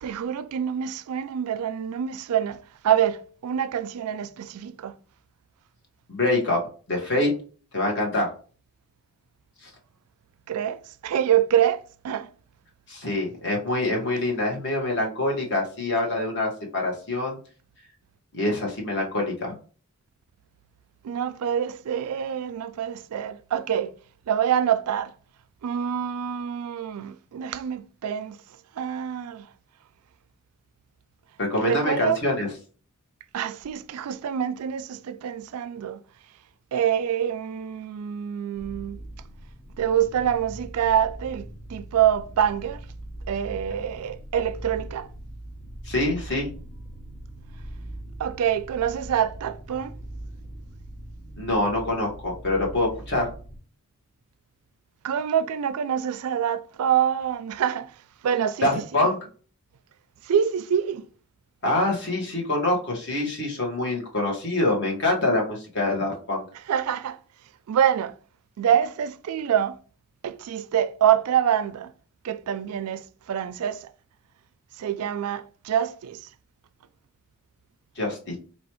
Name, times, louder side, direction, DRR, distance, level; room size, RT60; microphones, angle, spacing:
voice 1, 0.0-4.9 10.5-12.3 21.0-24.0 24.3-25.1 25.6-28.4 28.7-29.5 31.5-32.2 33.3-36.0 36.7-39.0 39.8-42.9 43.3-45.1 48.2-50.0 55.0-58.0 58.2-58.8 60.2-61.1 66.7-67.2 67.7-68.2 68.6-69.8 70.2-71.9 72.2-73.9 74.8-76.3, right 9 dB, 70° right, 0.3 m, -26 dB
voice 2, 6.1-6.6 6.9-7.3 7.7-8.3 9.6-9.7 12.9-17.4 18.3-19.5 31.4-32.5 45.8-46.5 51.4-53.3 58.6-59.2 61.6-66.4 78.0-78.4, left 2 dB, 55° left, 1.5 m, -25 dB
sound 1, 38.5-53.6, right 1 dB, 80° left, 1.5 m, -41 dB
4.3 x 3.0 x 3.0 m
head